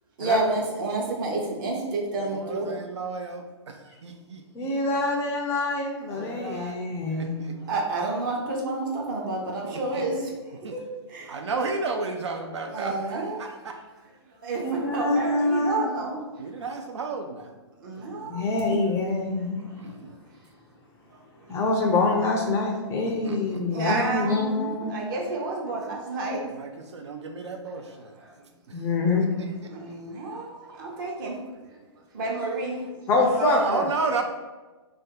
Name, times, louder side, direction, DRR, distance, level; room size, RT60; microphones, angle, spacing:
voice 1, 0.2-2.7 7.7-10.3 10.7-10.8 11.1-11.3 12.7-13.5 14.4-16.2 17.8-18.5 23.7-26.4 28.2-28.3 29.7-31.4 32.1-32.8 33.5-33.6, right 2 dB, 45° right, -1 dB, 0.8 m, -29 dB
voice 2, 2.2-4.7 6.1-6.8 7.1-7.8 9.6-10.1 10.6-10.8 11.3-13.8 14.7-15.0 16.4-17.5 18.0-18.4 19.6-20.1 21.5-21.6 23.0-23.8 26.4-28.2 28.7-28.8 29.4-29.7 31.3-31.9 33.1-34.2, right 4 dB, 75° right, 4 dB, 0.4 m, -34 dB
voice 3, 4.5-7.4 14.6-15.8 18.3-19.6 21.5-25.0 28.7-29.3 33.1-33.9, left 3 dB, 20° left, 0 dB, 0.4 m, -25 dB
2.5 x 2.2 x 3.7 m, 1.2 s
figure-of-eight pair, 120°, 15 cm